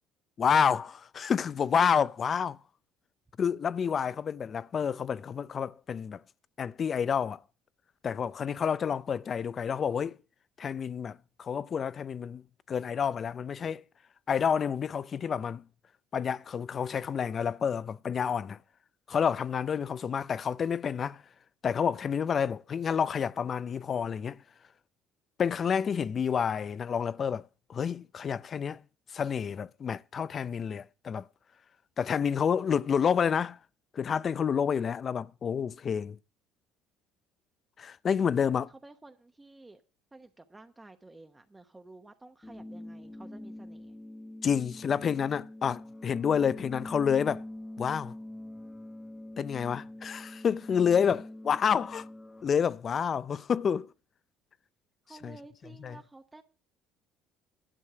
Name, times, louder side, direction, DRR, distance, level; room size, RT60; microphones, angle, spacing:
voice 1, 0.4-2.6 3.4-6.2 6.6-7.4 8.0-10.2 10.6-13.8 14.3-15.6 16.1-18.6 19.1-21.2 21.6-24.4 25.4-28.8 29.1-31.2 32.0-33.6 33.9-36.2 37.8-38.7 44.4-47.4 47.8-48.1 49.4-52.1 52.4-53.9 55.2-55.3 55.8-56.0, left 7 dB, 40° left, 0.4 m, -29 dB
voice 2, 38.4-39.8 40.1-44.0 55.0-56.4, right 2 dB, 15° right, 0.9 m, -52 dB
sound 1, 42.4-52.4, left 1 dB, 15° left, 0.8 m, -44 dB
11.0 x 6.4 x 7.7 m
cardioid pair, 105°, 0 cm